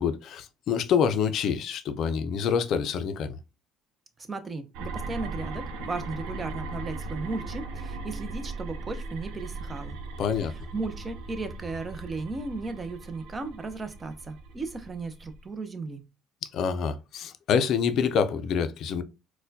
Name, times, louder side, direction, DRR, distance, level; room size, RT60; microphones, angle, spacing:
voice 1, 0.0-3.4 10.2-10.5 16.4-19.0, left 7 dB, 60° left, 0.4 m, -26 dB
voice 2, 4.3-10.0 10.4-16.0, right 3 dB, 25° right, 0.6 m, -35 dB
sound 1, 4.7-15.5, right 3 dB, 80° right, 0.5 m, -38 dB
4.1 x 2.2 x 2.7 m
cardioid pair, 110°, 0 cm